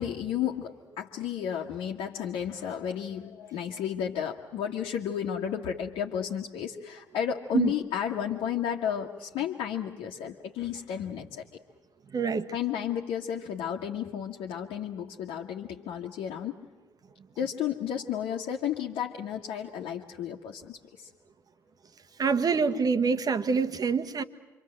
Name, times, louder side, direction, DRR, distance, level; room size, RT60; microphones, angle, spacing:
voice 1, 0.0-11.4 12.5-16.6 17.4-21.1, left 9 dB, 60° left, 1.7 m, -32 dB
voice 2, 12.1-12.5 22.2-24.2, right 5 dB, 40° right, 1.5 m, -25 dB
27.5 x 25.0 x 7.8 m
figure-of-eight pair, 45°, 10 cm